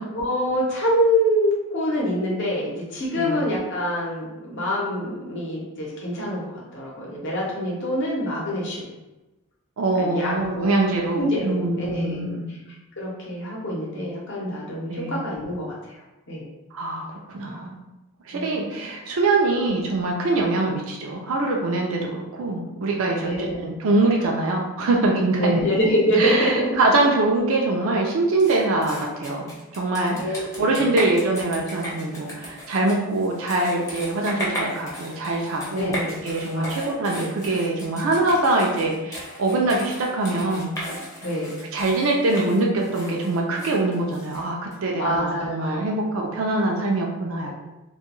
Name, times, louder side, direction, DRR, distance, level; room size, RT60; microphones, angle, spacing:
voice 1, 0.1-6.4 6.7-8.9 10.0-10.7 11.2-16.0 16.3-16.5 18.3-18.5 23.2-23.7 25.4-26.7 30.1-30.8 35.7-36.3 36.5-37.3 41.2-41.6 45.0-46.0 47.4-47.5, equal, 55° left, -4 dB, 0.8 m, -26 dB
voice 2, 9.8-12.5 14.9-15.2 16.7-17.0 17.3-17.7 18.3-25.6 26.2-29.5 29.7-40.7 41.7-47.5, right 2 dB, 60° right, 0 dB, 0.4 m, -23 dB
sound 1, 28.4-44.8, equal, 15° left, 0.6 m, -36 dB
2.2 x 2.2 x 3.0 m, 1.0 s
head